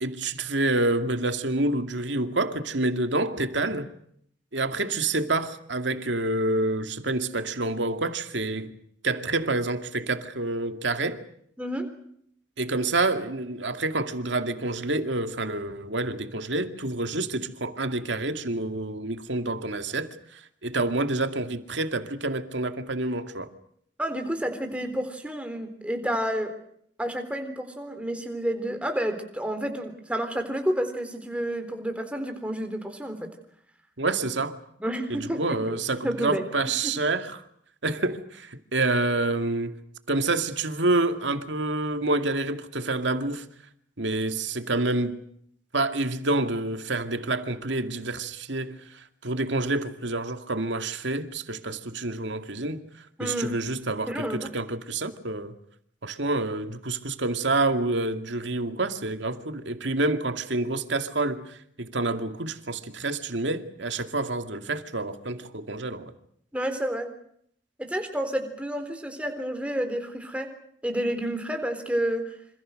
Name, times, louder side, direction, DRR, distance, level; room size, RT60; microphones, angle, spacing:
voice 1, 0.0-3.9 4.5-8.7 9.0-11.2 12.6-23.5 34.0-34.6 35.1-37.4 37.8-39.8 40.1-43.5 44.0-45.2 45.7-52.8 53.2-55.5 56.0-66.1, right 2 dB, 75° right, 2.2 m, -28 dB
voice 2, 24.0-26.5 27.0-33.3 34.8-36.4 53.2-53.5 54.1-54.4 66.5-67.1 67.8-70.5 70.8-72.2, equal, 5° right, 3.8 m, -30 dB
27.0 x 26.5 x 6.5 m
head